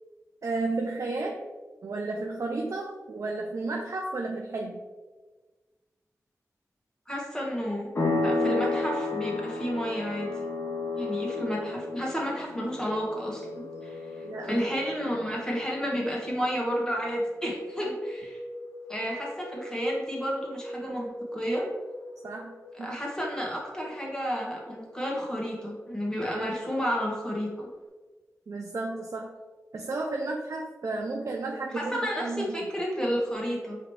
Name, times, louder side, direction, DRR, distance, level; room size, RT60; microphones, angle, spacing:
voice 1, 0.4-1.4 1.8-4.8 14.2-14.6 22.2-22.5 22.8-23.0 28.5-29.3 29.7-32.5, right 3 dB, 60° right, 1 dB, 0.4 m, -32 dB
voice 2, 7.1-7.9 8.2-10.3 10.9-18.4 18.9-21.7 22.8-27.7 31.7-33.8, equal, 10° left, -3 dB, 1.4 m, -31 dB
sound 1, 7.9-16.3, left 3 dB, 40° left, 1.0 m, -32 dB
sound 2, 11.8-27.9, left 1 dB, 70° left, 0.9 m, -46 dB
4.9 x 3.1 x 3.1 m, 1.3 s
cardioid pair, 55°, 6 cm